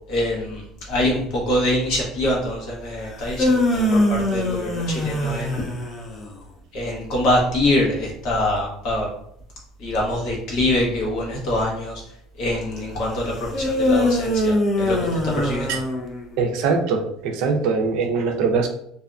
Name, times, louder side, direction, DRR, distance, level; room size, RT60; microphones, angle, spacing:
voice 1, 0.1-0.6 0.9-5.7 6.7-9.1 9.8-12.0 12.4-15.0 15.2-15.7, left 1 dB, 60° left, -3 dB, 1.0 m, -24 dB
sound 1, 3.1-6.4 13.5-16.5, left 1 dB, 30° left, 0.4 m, -22 dB
voice 2, 16.4-18.7, right 5 dB, 65° right, 3 dB, 0.5 m, -22 dB
2.6 x 2.2 x 2.5 m, 0.71 s
cardioid pair, 130°, 0 cm